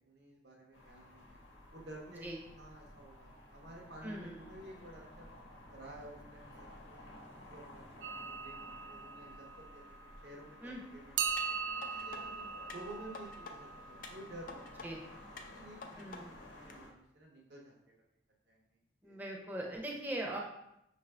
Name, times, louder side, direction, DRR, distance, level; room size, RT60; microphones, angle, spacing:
voice 1, 0.0-1.4 1.7-2.3 2.6-5.3 5.7-7.1 7.4-9.8 10.2-12.5 12.7-15.0 15.4-17.8 18.5-18.6 19.0-19.2 19.7-19.8, right 1 dB, 60° right, -2 dB, 0.7 m, -52 dB
sound 1, 0.7-16.9, left 1 dB, 85° left, 0.9 m, -54 dB
voice 2, 4.0-4.5 10.6-10.8 14.8-15.0 16.0-16.3 19.0-20.4, right 1 dB, 10° right, -2 dB, 0.6 m, -41 dB
sound 2, 8.0-10.5 11.2-15.1, right 6 dB, 80° right, 0.3 m, -41 dB
sound 3, 11.4-12.2 12.7-13.6 14.0-14.9 15.4-16.2 16.7-16.8, left 4 dB, 45° left, 0.4 m, -49 dB
5.4 x 2.6 x 3.3 m, 0.82 s
head